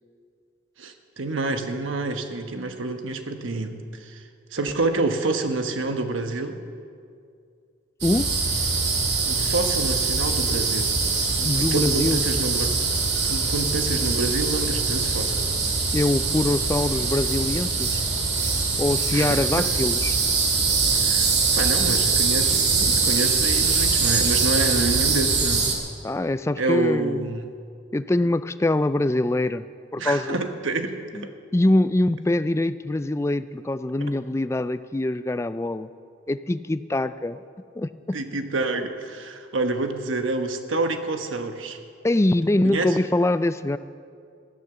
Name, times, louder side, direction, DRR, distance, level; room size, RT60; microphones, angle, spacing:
voice 1, 0.8-4.2 4.5-6.6 9.3-10.9 11.5-12.8 13.2-15.5 19.1-19.6 20.9-25.7 26.6-27.5 30.0-31.3 38.1-41.8 42.6-43.0, right 2 dB, 80° right, 6 dB, 1.2 m, -28 dB
sound 1, 8.0-25.8, right 4 dB, 55° right, 2.3 m, -23 dB
voice 2, 11.4-12.2 15.9-18.0 18.8-20.2 26.0-27.3 27.9-29.6 29.9-30.4 31.1-31.3 31.5-35.9 36.3-37.4 37.8-38.2 42.0-43.8, left 1 dB, 15° left, 13 dB, 0.3 m, -23 dB
15.0 x 11.0 x 6.8 m, 2.3 s
head